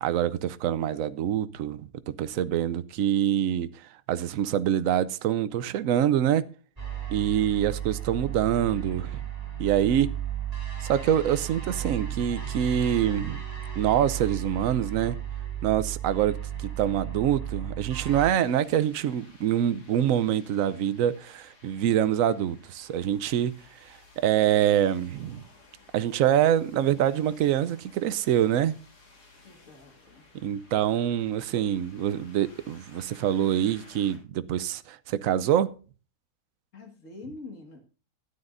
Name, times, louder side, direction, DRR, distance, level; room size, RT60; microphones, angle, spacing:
voice 1, 0.0-6.4 7.1-9.2 9.6-10.1 10.8-13.4 13.8-15.2 15.6-23.5 23.8-25.4 25.9-28.7 30.3-35.7, right 10 dB, 65° right, 1.0 m, -25 dB
sound 1, 6.8-18.3, right 10 dB, 25° right, 2.8 m, -34 dB
sound 2, 18.2-34.2, left 3 dB, 90° left, 3.1 m, -56 dB
voice 2, 29.4-30.3 36.7-37.8, left 3 dB, 55° left, 2.2 m, -45 dB
13.0 x 9.8 x 2.5 m
omnidirectional pair, 1.7 m